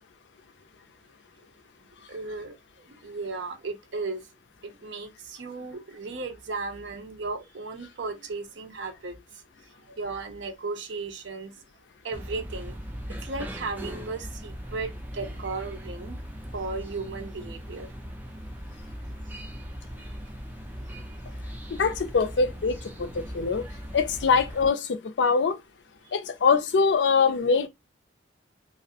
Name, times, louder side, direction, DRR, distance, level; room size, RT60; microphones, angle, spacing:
voice 1, 2.1-4.2 4.6-9.2 9.9-11.5 12.0-12.8 13.1-16.2 16.5-17.9 21.0-21.1, right 3 dB, 70° right, 0.6 m, -35 dB
sound 1, 12.1-24.7, equal, 10° right, 0.3 m, -39 dB
voice 2, 21.7-23.6 23.9-24.9 25.2-25.6 26.1-27.7, left 5 dB, 65° left, 0.4 m, -23 dB
2.4 x 2.0 x 2.7 m
head